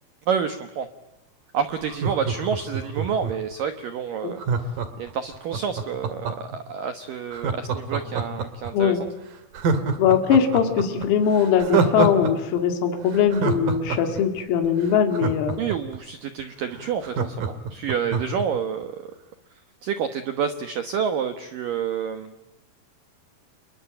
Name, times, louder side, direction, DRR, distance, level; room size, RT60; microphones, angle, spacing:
voice 1, 0.3-0.9 1.5-4.4 5.0-9.0 15.6-19.1 19.8-22.3, right 7 dB, 80° right, 9 dB, 1.9 m, -28 dB
Laughter, 1.8-3.5 4.4-6.6 7.3-8.7 9.1-9.2 9.5-12.3 12.6-12.7 13.1-16.0 16.4-16.5 16.7-18.4 18.8-18.9, right 5 dB, 50° right, 3.4 m, -26 dB
voice 2, 8.7-9.0 10.0-15.6, left 7 dB, 90° left, 6 dB, 4.9 m, -21 dB
28.5 x 22.0 x 8.8 m, 0.99 s
omnidirectional pair, 5.9 m